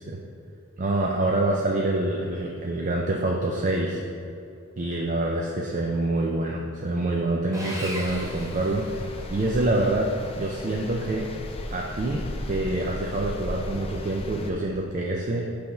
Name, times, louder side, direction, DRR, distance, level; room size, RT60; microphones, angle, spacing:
voice 1, 0.8-4.0 4.8-9.0 9.3-11.3 11.7-15.5, right 2 dB, 35° right, -1 dB, 0.4 m, -26 dB
Sawing, 7.5-9.4, equal, 15° right, 1.0 m, -37 dB
sound 1, 8.1-14.5, left 1 dB, 25° left, 0.4 m, -36 dB
7.8 x 3.4 x 5.6 m, 2.5 s
head